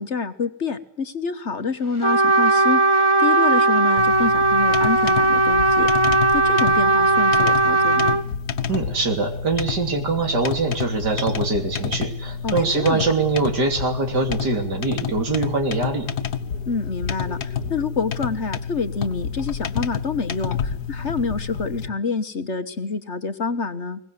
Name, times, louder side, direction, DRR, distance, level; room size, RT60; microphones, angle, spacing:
voice 1, 0.0-5.9 6.3-8.2 12.4-13.1 16.7-24.0, left 4 dB, 45° left, 9 dB, 1.5 m, -27 dB
Trumpet, 2.0-8.2, right 2 dB, 20° right, 1.1 m, -18 dB
sound 1, 4.0-21.9, left 6 dB, 75° left, 1.7 m, -29 dB
voice 2, 8.7-16.1, right 3 dB, 85° right, 5 dB, 3.8 m, -23 dB
22.5 x 19.5 x 9.6 m, 0.67 s
omnidirectional pair, 1.7 m